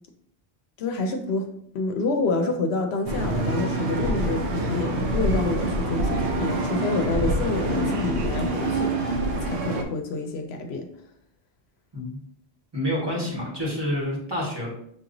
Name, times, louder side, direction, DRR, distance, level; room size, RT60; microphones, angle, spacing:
voice 1, 0.8-1.5 1.7-10.9, left 3 dB, 75° left, 5 dB, 0.8 m, -28 dB
sound 1, 3.1-9.8, right 1 dB, 85° right, 1.0 m, -26 dB
voice 2, 12.7-14.7, left 1 dB, 25° right, -6 dB, 1.5 m, -28 dB
6.2 x 2.9 x 2.6 m, 0.69 s
omnidirectional pair, 1.1 m